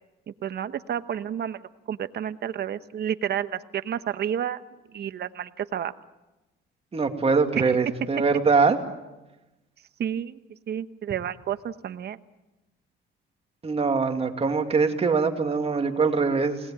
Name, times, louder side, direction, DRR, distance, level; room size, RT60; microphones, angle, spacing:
voice 1, 0.3-1.6 1.9-4.6 4.9-5.9 7.5-7.8 10.0-10.4 10.7-12.2, right 9 dB, 55° right, 12 dB, 1.1 m, -30 dB
voice 2, 6.9-8.8 13.6-16.6, right 4 dB, 30° right, 5 dB, 2.5 m, -23 dB
29.0 x 19.5 x 9.0 m, 1.1 s
cardioid pair, 115°, 20 cm